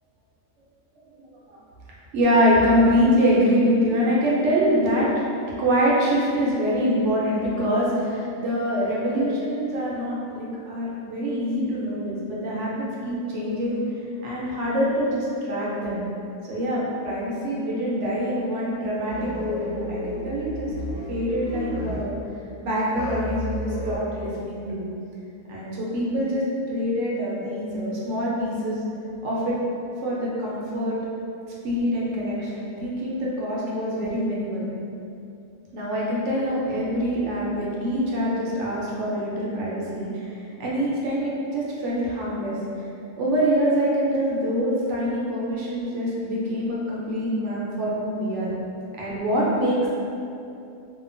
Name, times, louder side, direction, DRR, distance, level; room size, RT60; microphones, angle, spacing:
voice 1, 2.1-5.1 5.6-13.8 14.2-16.0 16.5-20.7 21.1-22.2 22.6-24.9 25.5-28.8 29.2-29.6 30.0-31.0 31.6-34.6 35.7-42.6 43.2-48.5 49.0-49.9, equal, 65° right, -6 dB, 0.8 m, -25 dB
sound 1, 19.1-22.1 22.9-24.0, left 1 dB, 80° left, 1.3 m, -31 dB
2.7 x 2.1 x 2.5 m, 2.6 s
omnidirectional pair, 1.4 m